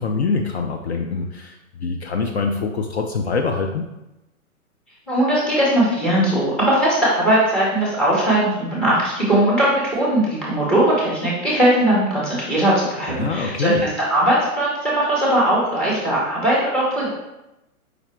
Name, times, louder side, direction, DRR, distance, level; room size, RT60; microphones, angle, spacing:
voice 1, 0.0-3.9 13.1-13.8, left 4 dB, 50° left, 3 dB, 0.4 m, -24 dB
voice 2, 5.1-17.1, right 1 dB, ahead, -6 dB, 0.6 m, -19 dB
5.0 x 2.1 x 4.3 m, 0.93 s
hypercardioid pair, 140°, 44 cm